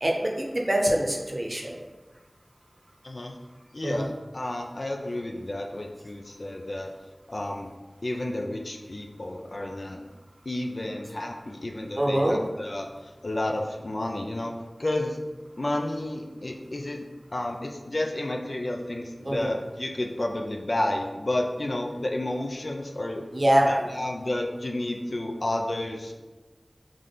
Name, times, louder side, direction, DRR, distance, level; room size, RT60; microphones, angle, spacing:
voice 1, 0.0-1.8 3.8-4.1 12.0-12.4 19.2-19.5 23.3-23.8, right 1 dB, 45° right, 0 dB, 0.8 m, -24 dB
voice 2, 3.0-3.3 3.7-6.9 7.3-7.7 8.0-10.1 10.4-14.5 14.8-15.2 15.6-17.0 17.3-23.2 23.6-26.1, left 1 dB, 55° left, 2 dB, 0.5 m, -31 dB
3.6 x 3.2 x 3.9 m, 1.2 s
wide cardioid pair, 50°, 0 cm